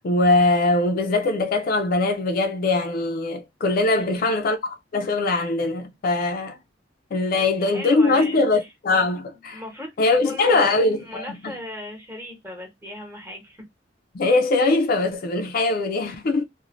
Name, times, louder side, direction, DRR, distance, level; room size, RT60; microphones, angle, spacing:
voice 1, 0.0-6.6 7.1-9.6 10.0-11.5 14.1-16.4, left 2 dB, 50° left, 0.4 m, -21 dB
voice 2, 3.9-4.3 7.3-8.4 9.5-13.6, left 1 dB, 15° right, 1.0 m, -37 dB
2.6 x 2.1 x 2.9 m
head